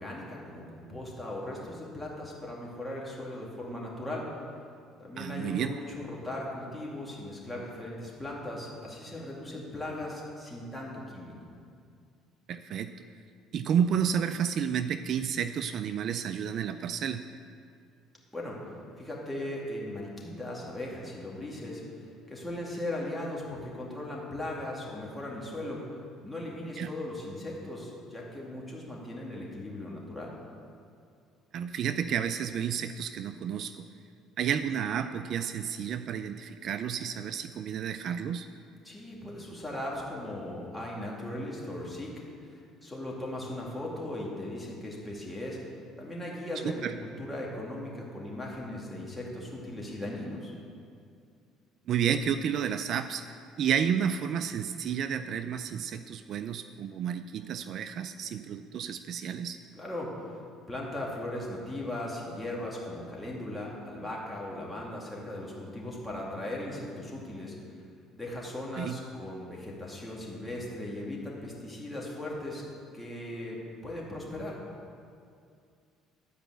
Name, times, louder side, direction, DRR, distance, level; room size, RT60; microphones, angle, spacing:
voice 1, 0.0-4.2 5.0-11.3 18.3-18.6 19.0-21.8 22.3-25.8 26.2-30.3 38.8-42.1 42.4-45.6 46.0-50.5 59.7-60.1 60.7-67.6 68.1-72.6 72.9-73.6 73.8-74.6, left 1 dB, 10° left, -4 dB, 2.6 m, -38 dB
voice 2, 5.2-5.7 12.5-12.9 13.5-17.2 26.8-26.9 31.5-33.9 34.4-38.5 46.6-46.9 51.9-59.6 68.8-69.0, right 8 dB, 55° right, 10 dB, 0.4 m, -31 dB
11.0 x 5.0 x 8.0 m, 2.4 s
cardioid pair, 100°, 0 cm